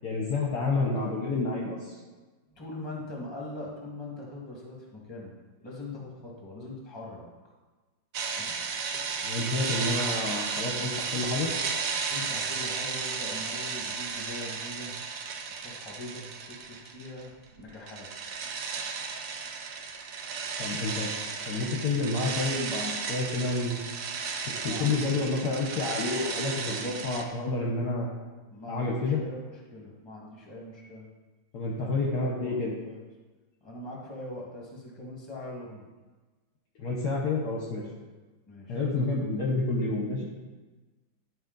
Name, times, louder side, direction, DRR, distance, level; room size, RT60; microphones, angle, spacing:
voice 1, 0.0-2.0 9.2-11.5 20.6-21.1 21.5-23.8 24.6-28.1 28.7-29.2 31.5-32.7 36.8-37.8 38.7-40.3, left 3 dB, 60° left, -2 dB, 1.3 m, -29 dB
voice 2, 0.5-1.1 2.5-5.3 5.6-7.2 8.4-8.5 12.1-15.0 15.5-18.1 24.6-25.4 28.5-31.1 31.6-33.0 33.6-35.8 38.5-38.8, left 1 dB, 15° left, -3 dB, 1.5 m, -42 dB
sound 1, 8.1-17.3 17.5-27.2, right 5 dB, 70° right, 0.8 m, -34 dB
11.0 x 5.1 x 3.9 m, 1.3 s
omnidirectional pair, 2.3 m